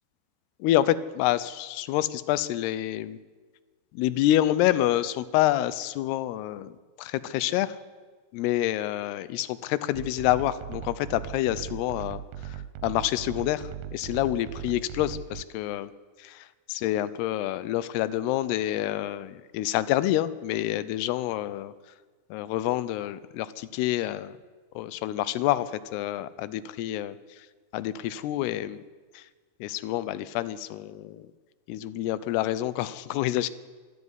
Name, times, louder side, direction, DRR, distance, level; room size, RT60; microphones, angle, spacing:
voice 1, 0.6-3.2 3.9-7.8 8.3-15.9 16.2-21.7 22.3-24.4 24.8-27.1 27.7-28.8 29.1-29.3 29.6-31.3 31.7-33.5, left 14 dB, 80° left, 16 dB, 2.7 m, -27 dB
sound 1, 9.9-15.4, right 10 dB, 75° right, 2.8 m, -39 dB
25.0 x 11.0 x 9.8 m, 1.4 s
omnidirectional pair, 4.9 m